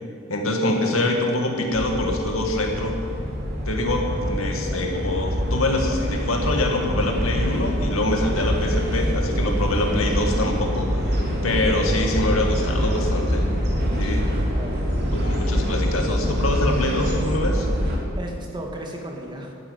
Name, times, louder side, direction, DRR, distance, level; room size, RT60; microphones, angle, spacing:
voice 1, 0.3-3.0 3.7-13.5 14.0-14.2 15.1-17.7, left 1 dB, 85° left, 2 dB, 2.2 m, -25 dB
sound 1, 1.7-18.0, equal, 50° right, 3.1 m, -24 dB
voice 2, 4.7-5.0 14.5-15.4 18.2-19.5, right 1 dB, 20° right, 1 dB, 1.9 m, -36 dB
12.5 x 10.0 x 9.3 m, 2.4 s
head